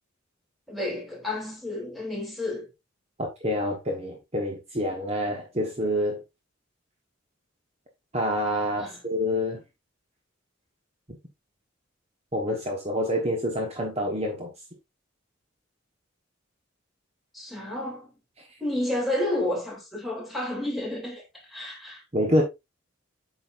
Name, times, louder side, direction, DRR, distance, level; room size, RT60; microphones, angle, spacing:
voice 1, 0.7-2.7 8.8-9.0 17.3-18.1 18.6-22.0, left 1 dB, ahead, 3.0 m, -31 dB
voice 2, 3.2-6.2 8.1-9.6 12.3-14.5 22.1-22.4, equal, 30° right, 1.3 m, -27 dB
8.5 x 6.3 x 2.6 m
head